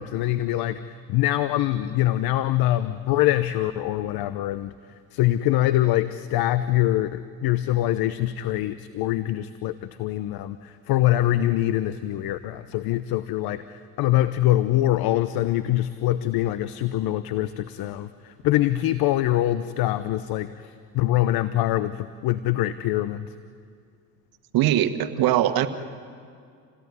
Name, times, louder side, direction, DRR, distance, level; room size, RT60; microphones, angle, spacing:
voice 1, 0.0-4.7 5.1-23.3, left 14 dB, 65° left, 13 dB, 0.9 m, -24 dB
voice 2, 24.5-25.7, right 12 dB, 65° right, 9 dB, 1.6 m, -21 dB
28.5 x 17.5 x 9.7 m, 2.3 s
supercardioid pair, 80°, 39 cm